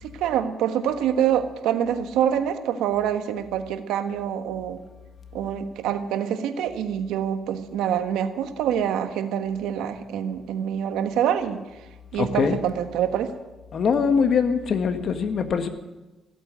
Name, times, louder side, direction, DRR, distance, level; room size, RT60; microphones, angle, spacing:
voice 1, 0.0-4.8 5.3-11.6 12.1-13.3, right 9 dB, 90° right, 8 dB, 1.3 m, -26 dB
voice 2, 12.2-12.6 13.7-15.7, left 6 dB, 55° left, 8 dB, 1.7 m, -22 dB
15.5 x 8.6 x 9.4 m, 1.1 s
cardioid pair, 90°, 0 cm